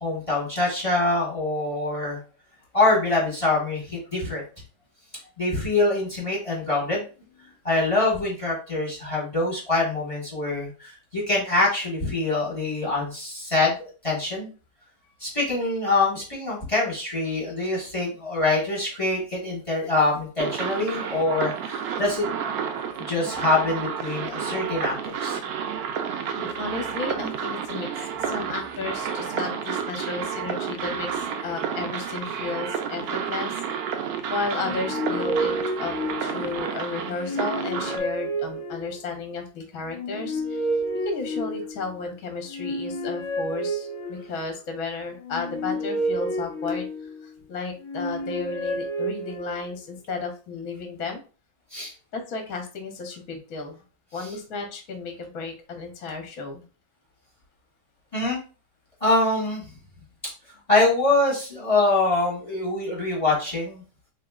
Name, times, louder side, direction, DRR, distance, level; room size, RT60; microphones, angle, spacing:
voice 1, 0.0-2.2 2.7-4.4 5.4-7.0 7.6-14.5 15.2-22.3 23.1-25.4 51.7-51.9 58.1-58.4 59.0-59.6 60.7-63.8, left 2 dB, 20° left, -2 dB, 1.1 m, -24 dB
sound 1, 20.4-38.0, right 7 dB, 90° right, 0.8 m, -31 dB
voice 2, 26.3-33.5 34.3-35.5 35.8-35.9 36.2-40.7 41.0-51.2 52.1-53.8 54.1-56.7, left 3 dB, 55° left, 4 dB, 1.1 m, -33 dB
sound 2, 34.5-36.7 37.1-39.2 39.9-42.0 42.5-44.5 45.2-47.3 47.8-49.8, equal, 75° left, 0.7 m, -30 dB
4.1 x 3.2 x 2.3 m, 0.35 s
omnidirectional pair, 2.2 m